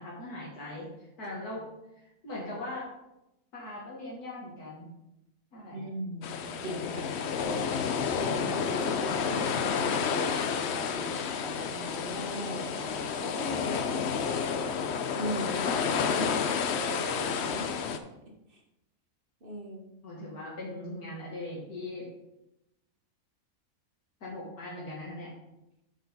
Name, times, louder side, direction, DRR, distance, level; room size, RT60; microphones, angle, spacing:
voice 1, 0.0-1.7 1.9-2.9 3.5-4.9 5.5-5.8 7.4-7.5 20.0-22.1 24.2-25.3, left 1 dB, 80° left, -6 dB, 2.3 m, -40 dB
voice 2, 5.7-7.1 7.6-7.8 8.1-10.5 10.7-14.2 15.1-17.9 18.5-18.6 19.4-20.0, equal, 40° right, 0 dB, 1.5 m, -39 dB
sound 1, 6.2-18.0, left 6 dB, 60° left, 0.7 m, -30 dB
7.5 x 6.8 x 4.1 m, 0.90 s
omnidirectional pair, 1.6 m